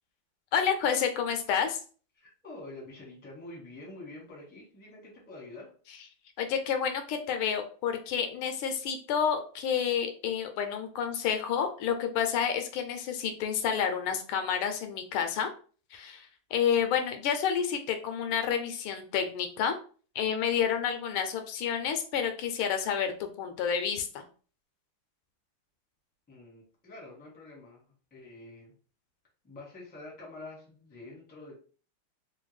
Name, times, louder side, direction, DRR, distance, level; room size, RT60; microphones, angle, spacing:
voice 1, 0.5-1.8 6.4-15.5 15.9-19.8 20.1-24.2, left 7 dB, 80° left, 6 dB, 1.4 m, -29 dB
voice 2, 2.1-5.7 26.3-28.7 29.4-31.6, left 2 dB, 10° left, -3 dB, 0.6 m, -47 dB
3.6 x 2.2 x 3.1 m, 0.41 s
omnidirectional pair, 2.4 m